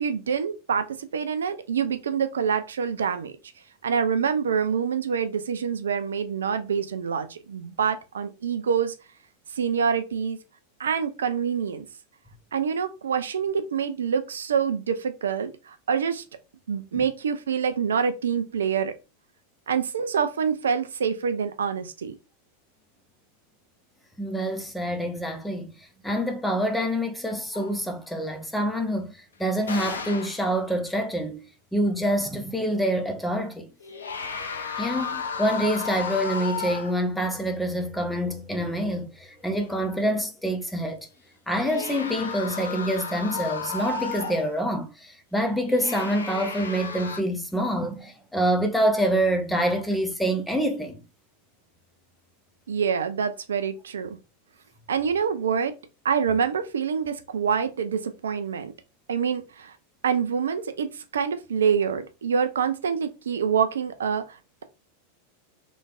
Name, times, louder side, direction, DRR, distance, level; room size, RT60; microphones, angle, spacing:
voice 1, 0.0-3.3 3.8-8.9 9.5-10.4 10.8-11.9 12.5-16.2 16.7-18.9 19.7-22.1 52.7-54.2 54.9-55.7 56.0-58.7 59.1-59.8 60.0-64.6, right 7 dB, 65° right, 0.4 m, -26 dB
voice 2, 24.2-33.7 34.8-41.1 41.5-51.0, equal, 5° left, 0.7 m, -26 dB
sound 1, 27.5-27.8 29.6-30.5 33.8-37.1 41.5-44.6 45.6-47.2, left 5 dB, 70° left, 0.5 m, -33 dB
3.2 x 3.1 x 2.4 m
figure-of-eight pair, 90°, 0 cm